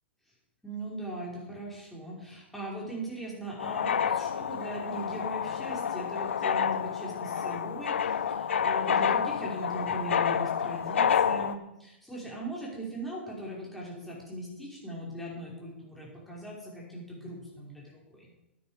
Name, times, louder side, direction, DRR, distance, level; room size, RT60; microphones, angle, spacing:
voice 1, 0.6-7.9 8.3-18.3, right 1 dB, ahead, -6 dB, 5.5 m, -39 dB
sound 1, 3.6-11.5, left 8 dB, 70° left, 0.7 m, -29 dB
12.5 x 9.7 x 5.2 m, 0.91 s
figure-of-eight pair, 110°, 7 cm